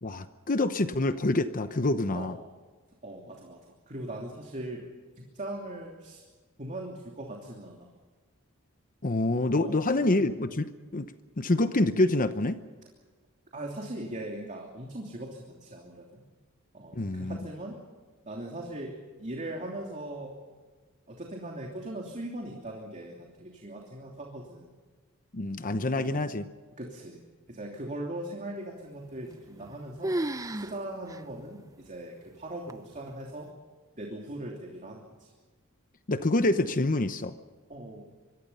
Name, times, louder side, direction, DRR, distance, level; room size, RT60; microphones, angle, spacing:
voice 1, 0.0-2.4 9.0-11.1 11.4-12.6 16.9-17.4 25.3-26.5 36.1-37.4, left 2 dB, 40° left, 10 dB, 0.9 m, -26 dB
voice 2, 3.0-3.6 3.9-4.8 5.2-6.2 6.6-7.9 9.5-9.7 13.5-16.3 16.7-17.8 18.2-18.9 19.2-20.4 21.1-24.7 25.9-26.2 26.8-27.2 27.5-30.1 30.5-33.5 33.9-35.3 37.7-38.1, right 1 dB, 35° right, 0 dB, 3.0 m, -40 dB
sound 1, 29.3-29.8 30.0-30.8 31.1-31.2 31.9-32.0 32.7-33.1, right 1 dB, 15° right, 0.6 m, -32 dB
26.0 x 23.0 x 5.6 m, 1.4 s
head